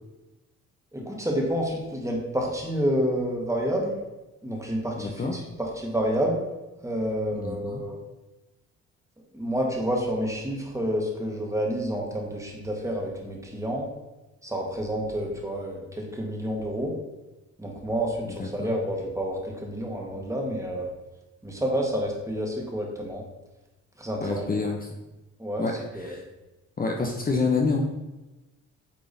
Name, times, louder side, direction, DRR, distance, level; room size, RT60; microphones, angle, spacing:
voice 1, 0.9-3.9 4.4-6.4 6.8-8.0 9.3-13.8 14.4-16.9 17.6-20.9 21.4-23.2 24.0-24.5 25.4-26.1, equal, 10° right, -1 dB, 1.7 m, -29 dB
voice 2, 5.0-5.3 7.3-7.8 18.4-18.7 24.2-24.8 25.6-26.2 26.8-27.8, left 4 dB, 30° left, 0 dB, 0.8 m, -27 dB
8.8 x 3.8 x 4.1 m, 1.0 s
cardioid pair, 90°, 30 cm